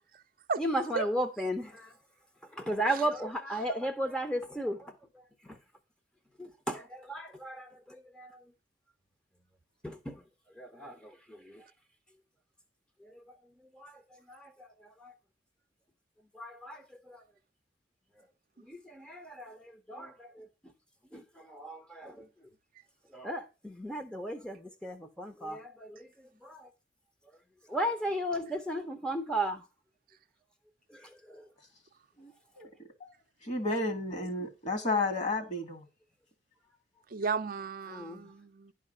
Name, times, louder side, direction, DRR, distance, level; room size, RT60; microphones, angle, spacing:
voice 1, 0.6-1.9 2.5-5.0 5.4-5.6 6.4-8.4 9.8-10.2 10.6-11.6 13.0-13.2 13.7-15.1 16.3-17.2 18.6-20.5 21.1-22.3 23.1-26.7 27.7-29.6 30.9-31.5 37.9-38.3, right 1 dB, 5° left, 0.7 m, -36 dB
voice 2, 33.4-35.8, left 2 dB, 40° left, 1.8 m, -32 dB
voice 3, 37.1-38.7, right 5 dB, 50° right, 0.5 m, -35 dB
11.0 x 4.8 x 5.4 m
head